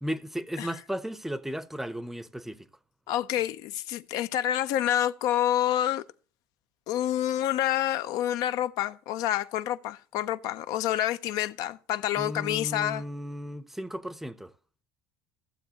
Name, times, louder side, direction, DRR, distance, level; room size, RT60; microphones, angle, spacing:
voice 1, 0.0-2.7 12.2-14.5, equal, 5° right, 0.6 m, -35 dB
voice 2, 3.1-6.0 6.9-13.0, left 12 dB, 65° left, 0.4 m, -28 dB
14.5 x 7.0 x 2.8 m
supercardioid pair, 105°, 7 cm